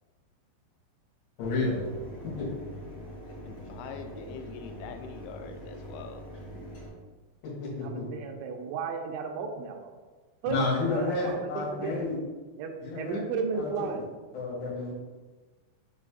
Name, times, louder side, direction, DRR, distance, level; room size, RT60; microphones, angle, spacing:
voice 1, 1.4-1.8 2.4-2.5 7.6-8.1 10.5-12.1 12.8-13.2 13.6-13.7 14.3-14.9, left 3 dB, 60° left, -5 dB, 3.6 m, -30 dB
Mechanisms, 1.4-6.9, equal, 40° left, 1.7 m, -43 dB
voice 2, 3.3-6.3, left 6 dB, 85° left, 6 dB, 3.0 m, -44 dB
voice 3, 7.8-10.0 10.4-12.1 12.6-14.0, right 5 dB, 85° right, 4 dB, 3.0 m, -34 dB
7.1 x 4.1 x 3.8 m, 1.3 s
omnidirectional pair, 5.3 m